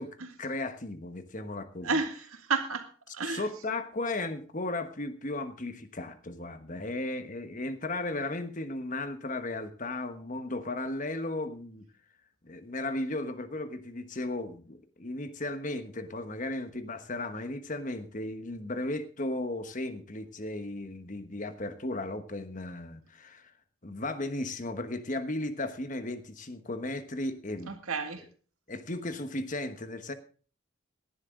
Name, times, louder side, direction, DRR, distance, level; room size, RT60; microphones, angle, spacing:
voice 1, 0.0-2.0 3.2-11.8 12.4-23.5 23.8-27.8 28.7-30.1, left 2 dB, 35° left, 10 dB, 1.2 m, -35 dB
voice 2, 1.8-2.9 3.1-3.5 27.7-28.2, right 4 dB, 85° right, 6 dB, 2.1 m, -31 dB
17.5 x 11.5 x 3.8 m, 0.40 s
head